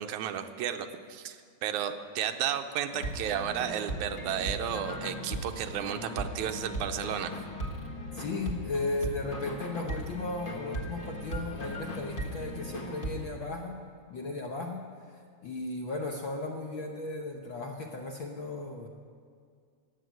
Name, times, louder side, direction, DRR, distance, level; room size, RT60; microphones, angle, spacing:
voice 1, 0.0-7.3, right 9 dB, 85° right, 7 dB, 2.2 m, -33 dB
sound 1, 2.9-13.2, equal, 30° left, 0.9 m, -38 dB
sound 2, 7.0-8.9 9.2-9.3 9.6-10.1 10.5-12.6, left 2 dB, 85° left, 3.0 m, -54 dB
voice 2, 8.1-13.8 14.1-18.9, left 2 dB, 65° left, 1 dB, 1.2 m, -36 dB
14.5 x 8.5 x 9.2 m, 2.2 s
omnidirectional pair, 3.4 m